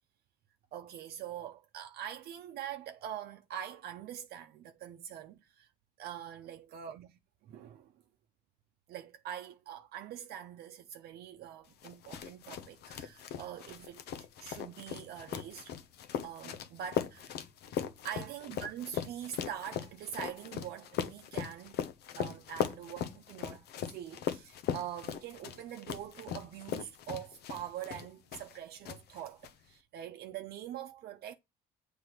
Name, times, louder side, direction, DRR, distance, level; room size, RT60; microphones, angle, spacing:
voice 1, 0.7-5.7 6.0-7.9 8.9-15.7 16.2-17.4 18.0-21.7 22.1-31.3, right 10 dB, 70° right, 0.7 m, -44 dB
sound 1, 11.8-28.6 28.8-29.5, left 9 dB, 75° left, 0.8 m, -39 dB
7.8 x 3.4 x 6.0 m
cardioid pair, 110°, 17 cm